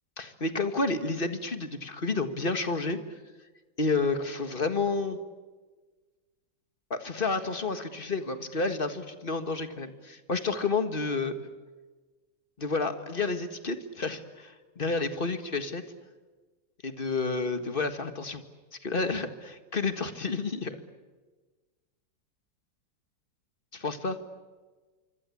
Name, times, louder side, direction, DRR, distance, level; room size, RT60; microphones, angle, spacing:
voice 1, 0.2-3.0 3.8-5.2 6.9-11.5 12.6-15.8 16.8-18.4 18.8-20.8 23.7-24.2, left 3 dB, 30° left, 9 dB, 1.7 m, -30 dB
26.0 x 25.0 x 8.5 m, 1.3 s
omnidirectional pair, 2.0 m